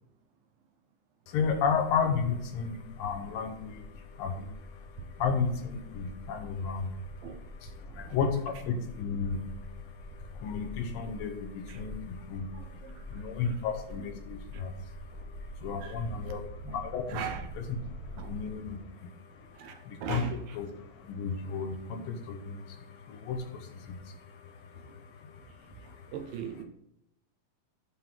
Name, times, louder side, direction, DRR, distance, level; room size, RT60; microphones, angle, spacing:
voice 1, 1.3-17.2 17.6-20.2 20.5-26.1, left 5 dB, 75° left, 2.4 m, -34 dB
sound 1, 3.5-18.5, left 1 dB, 30° right, 1.8 m, -46 dB
voice 2, 7.9-8.2 11.7-11.8 12.5-13.6 14.5-14.6 15.1-15.3 15.8-16.3 16.6-16.8 17.1-17.6 18.2-18.3 19.5-20.6 23.1-23.2 24.7-25.0 25.8-26.6, right 7 dB, 75° right, 2.4 m, -41 dB
11.5 x 3.8 x 4.5 m
omnidirectional pair, 4.4 m